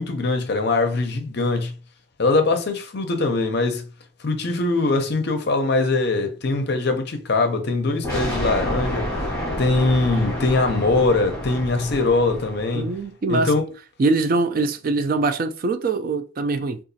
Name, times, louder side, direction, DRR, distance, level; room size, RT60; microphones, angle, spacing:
voice 1, 0.0-1.7 2.2-3.9 4.2-9.1 9.6-12.9 13.3-13.7, left 3 dB, 50° left, 0.5 m, -22 dB
sound 1, 8.0-12.9, left 1 dB, 15° left, 1.2 m, -29 dB
voice 2, 12.7-13.5 14.0-16.8, right 3 dB, 40° right, 0.3 m, -23 dB
3.8 x 2.4 x 2.6 m
head